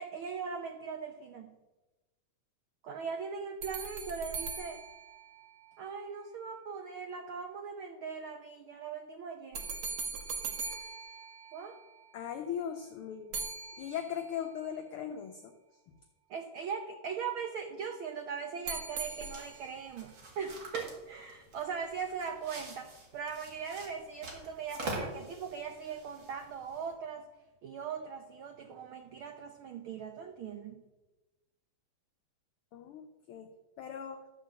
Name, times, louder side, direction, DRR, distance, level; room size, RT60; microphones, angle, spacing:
voice 1, 0.0-1.5 2.8-4.8 5.8-9.6 11.5-11.8 16.3-27.3 27.6-30.8, right 6 dB, 80° right, 5 dB, 1.1 m, -40 dB
sound 1, 3.6-6.0 9.5-12.0 13.3-14.5 18.7-19.9, right 5 dB, 60° right, 1.7 m, -41 dB
voice 2, 12.1-13.4 13.7-15.5 15.9-16.0 32.7-33.5 33.8-34.2, left 8 dB, 85° left, 5 dB, 1.2 m, -39 dB
sound 2, 19.0-26.9, right 2 dB, 45° right, 2.6 m, -45 dB
13.0 x 4.5 x 7.4 m, 1.1 s
omnidirectional pair, 3.3 m